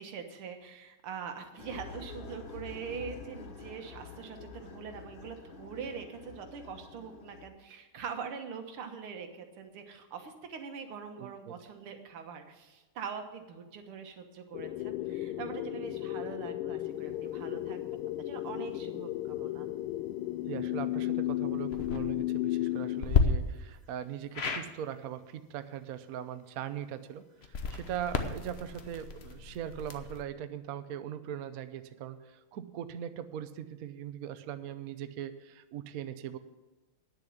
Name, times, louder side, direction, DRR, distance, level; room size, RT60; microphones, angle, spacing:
voice 1, 0.0-18.0 18.3-19.7, right 6 dB, 85° right, 6 dB, 2.1 m, -43 dB
sound 1, 1.6-7.5, left 5 dB, 65° left, 2.1 m, -47 dB
voice 2, 11.2-11.5 20.5-36.4, right 10 dB, 70° right, 10 dB, 0.8 m, -40 dB
sound 2, 14.5-23.0, left 15 dB, 85° left, 1.5 m, -34 dB
sound 3, 21.6-22.0 23.0-23.2 24.3-24.7 27.4-30.2, left 6 dB, 50° left, 0.8 m, -32 dB
10.0 x 7.1 x 8.3 m, 1.2 s
omnidirectional pair, 2.3 m